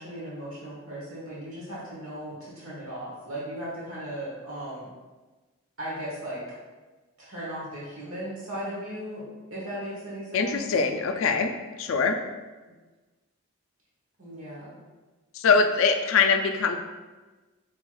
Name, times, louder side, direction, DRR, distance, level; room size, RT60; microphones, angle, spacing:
voice 1, 0.0-4.9 5.8-6.4 7.2-9.2 9.5-10.6 14.2-14.8, equal, 75° right, -7 dB, 1.4 m, -37 dB
voice 2, 10.3-11.5 11.8-12.2 15.3-16.8, left 5 dB, 70° left, 6 dB, 0.3 m, -22 dB
4.6 x 3.3 x 2.3 m, 1.2 s
head